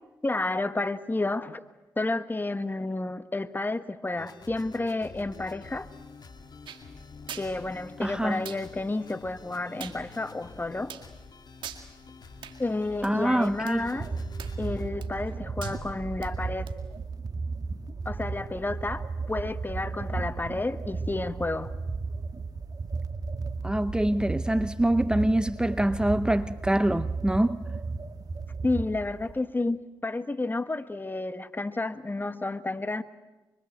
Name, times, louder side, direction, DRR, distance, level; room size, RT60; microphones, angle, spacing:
voice 1, 0.2-1.6 2.0-5.9 7.3-10.9 12.6-14.1 14.6-16.7 18.0-21.7 28.6-29.8 30.0-33.0, left 2 dB, 25° left, 1.5 m, -31 dB
sound 1, 4.2-14.9, left 4 dB, 55° left, 2.4 m, -48 dB
sound 2, 6.7-6.8 7.3-7.5 8.5-8.6 9.8-10.0 10.9-11.1 11.6-11.8 12.4-12.6 13.0-13.1 13.7-13.8 14.4-14.7 15.0-15.3 15.6-15.8 16.2-16.3 16.7-16.8, right 9 dB, 75° right, 2.1 m, -41 dB
voice 2, 8.0-8.4 13.0-13.9 23.6-27.6, right 1 dB, 10° right, 0.8 m, -25 dB
sound 3, 13.7-29.4, right 4 dB, 50° right, 2.0 m, -34 dB
24.5 x 23.5 x 8.1 m
supercardioid pair, 50°, 8 cm